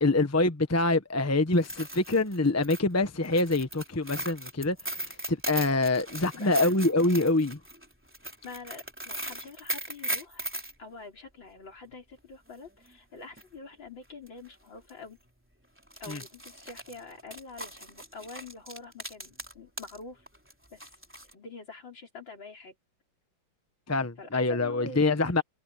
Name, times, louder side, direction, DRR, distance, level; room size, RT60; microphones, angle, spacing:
voice 1, 0.0-7.6 16.1-16.2 23.9-25.4, left 2 dB, 10° left, 0.8 m, -25 dB
sound 1, 1.5-10.7 12.9-13.0 13.4-13.5 14.3-14.5 14.8-14.9 15.8-20.0 20.3-21.3, right 1 dB, 5° right, 3.3 m, -38 dB
voice 2, 6.3-7.2 8.4-10.5 10.8-15.2 16.0-20.3 20.7-20.8 21.3-22.7 24.2-25.4, left 4 dB, 70° left, 5.1 m, -46 dB
omnidirectional pair, 2.2 m